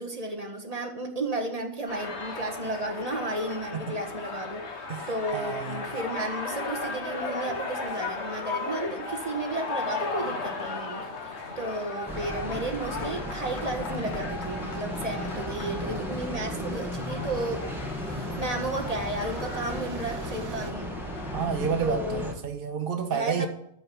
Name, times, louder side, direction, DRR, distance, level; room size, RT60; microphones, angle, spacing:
voice 1, 0.0-4.6 5.1-17.7 18.1-20.9 21.8-22.2 23.1-23.5, right 2 dB, 35° right, 1.7 m, -33 dB
sound 1, 1.9-21.4, left 3 dB, 75° left, 1.6 m, -36 dB
sound 2, 4.7-9.0 10.5-20.7, right 5 dB, 75° right, 1.3 m, -49 dB
voice 2, 4.9-5.9 21.3-23.5, right 6 dB, 55° right, 1.3 m, -30 dB
sound 3, 12.1-22.3, equal, ahead, 2.1 m, -35 dB
14.5 x 5.4 x 7.9 m
omnidirectional pair, 1.2 m